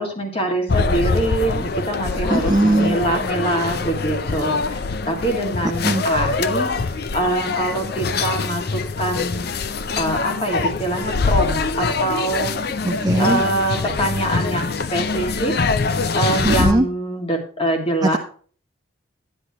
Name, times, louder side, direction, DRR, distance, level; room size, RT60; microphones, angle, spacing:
voice 1, 0.0-9.5 10.0-12.8 13.2-15.6 16.1-18.2, right 1 dB, 30° left, 2 dB, 2.1 m, -24 dB
sound 1, 0.7-16.7, left 4 dB, 50° left, 0.5 m, -24 dB
voice 2, 2.3-3.0 5.8-6.0 12.8-13.4 16.4-16.9 18.0-18.2, right 2 dB, 20° right, 6 dB, 0.4 m, -19 dB
11.0 x 10.0 x 3.0 m, 0.43 s
head